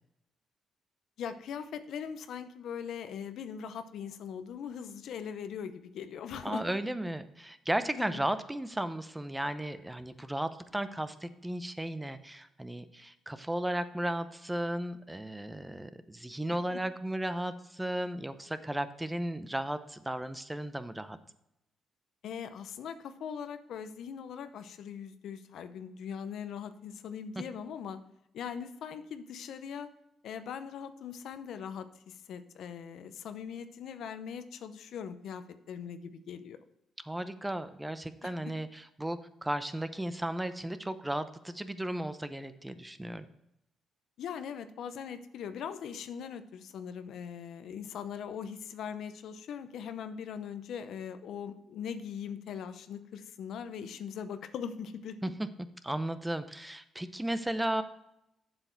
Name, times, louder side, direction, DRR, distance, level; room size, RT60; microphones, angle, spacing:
voice 1, 1.2-6.6 8.0-8.2 16.7-16.8 22.2-28.0 28.3-29.9 30.2-36.6 38.2-38.3 44.2-55.2, left 7 dB, 75° left, 10 dB, 0.7 m, -41 dB
voice 2, 6.4-21.2 37.0-43.3 55.2-55.5 55.8-57.8, right 1 dB, 10° right, 11 dB, 0.6 m, -35 dB
7.8 x 7.0 x 4.5 m, 0.83 s
cardioid pair, 90°, 0 cm